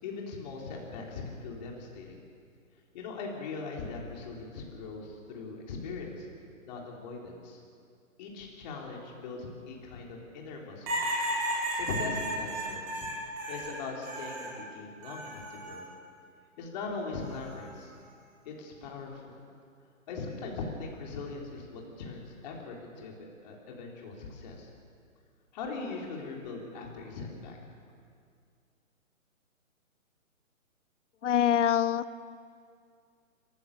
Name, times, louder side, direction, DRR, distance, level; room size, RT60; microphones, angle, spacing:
voice 1, 0.0-2.2 2.9-6.3 6.7-7.6 8.2-11.0 11.7-13.1 13.5-15.8 16.6-17.9 18.5-19.4 20.1-24.7 25.5-27.6, left 4 dB, 30° left, -1 dB, 3.9 m, -40 dB
sound 1, 10.9-14.6 15.0-15.8 17.2-17.6, right 1 dB, 20° right, 4.2 m, -34 dB
voice 2, 31.2-32.2, left 10 dB, 60° left, 16 dB, 0.8 m, -25 dB
29.5 x 15.0 x 6.9 m, 2.2 s
hypercardioid pair, 155°, 42 cm